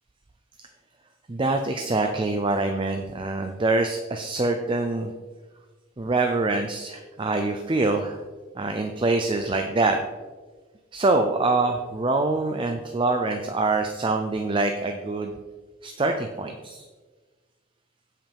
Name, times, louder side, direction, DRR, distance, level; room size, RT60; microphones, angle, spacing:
voice 1, 1.3-5.1 6.0-8.2 8.5-10.0 10.9-15.3 15.8-16.9, right 2 dB, 25° right, 5 dB, 0.5 m, -25 dB
16.0 x 5.7 x 3.5 m, 1.4 s
head